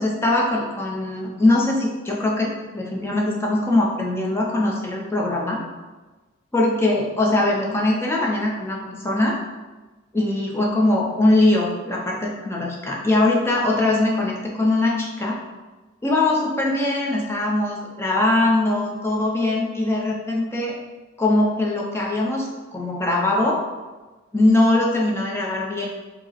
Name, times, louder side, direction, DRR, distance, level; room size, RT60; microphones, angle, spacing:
voice 1, 0.0-5.6 6.5-9.4 10.1-15.4 16.0-20.7 21.2-22.5 22.7-23.6 24.3-25.9, left 2 dB, 10° left, -3 dB, 0.6 m, -21 dB
4.9 x 2.1 x 4.1 m, 1.2 s
head